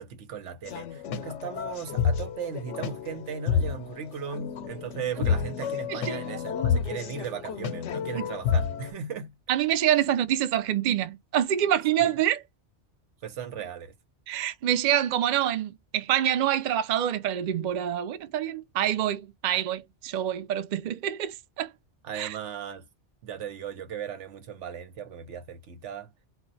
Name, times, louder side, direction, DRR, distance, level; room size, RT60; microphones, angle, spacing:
voice 1, 0.0-9.3 12.0-12.1 13.2-13.9 22.0-22.9 23.2-26.1, right 7 dB, 85° right, 1.0 m, -37 dB
sound 1, 0.7-8.9, left 7 dB, 85° left, 0.9 m, -30 dB
voice 2, 5.9-6.2 8.1-8.3 9.5-12.4 14.3-21.7 22.1-22.3, right 11 dB, 60° right, 0.5 m, -26 dB
2.4 x 2.1 x 3.8 m
omnidirectional pair, 1.2 m